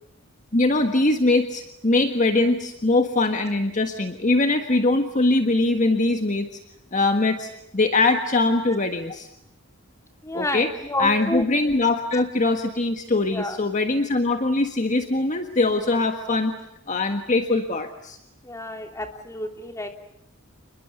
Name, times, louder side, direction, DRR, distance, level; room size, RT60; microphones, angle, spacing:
voice 1, 0.5-6.6 6.9-9.3 10.3-10.7 11.0-16.5 16.9-18.2, left 2 dB, 35° left, 6 dB, 1.5 m, -22 dB
voice 2, 10.2-11.5 13.3-13.6 18.4-19.9, left 1 dB, 15° left, 4 dB, 2.9 m, -29 dB
29.0 x 21.5 x 8.2 m, 0.78 s
head